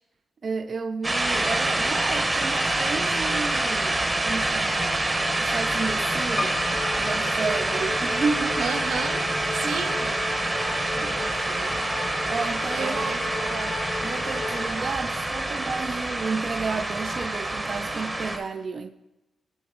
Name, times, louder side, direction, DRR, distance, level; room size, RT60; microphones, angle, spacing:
voice 1, 0.4-5.1 5.4-6.6 7.0-8.8 9.6-10.6 10.9-11.9 12.2-13.2 14.0-18.9, right 4 dB, 45° right, 0.3 m, -32 dB
sound 1, 1.0-18.4, right 2 dB, 20° right, 0.8 m, -26 dB
Piano, 6.4-8.4 9.0-9.7 10.0-10.1 10.3-10.4, left 2 dB, 15° left, 0.4 m, -35 dB
Musical instrument, 6.6-15.1, left 4 dB, 65° left, 0.7 m, -36 dB
voice 2, 7.9-8.2 8.6-10.1 12.7-13.8, right 6 dB, 90° right, 0.7 m, -34 dB
10.0 x 4.6 x 3.7 m
cardioid pair, 120°, 0 cm